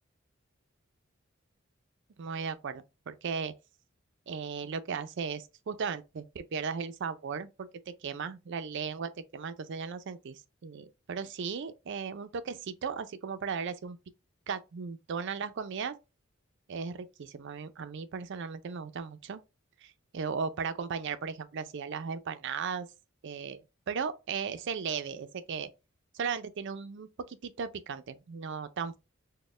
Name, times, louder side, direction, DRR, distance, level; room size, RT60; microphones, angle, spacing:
voice 1, 2.2-3.5 4.3-14.0 14.5-16.0 16.7-19.4 19.8-22.9 23.2-25.7 26.1-29.0, right 6 dB, 60° right, 0.4 m, -36 dB
4.1 x 2.1 x 3.2 m
head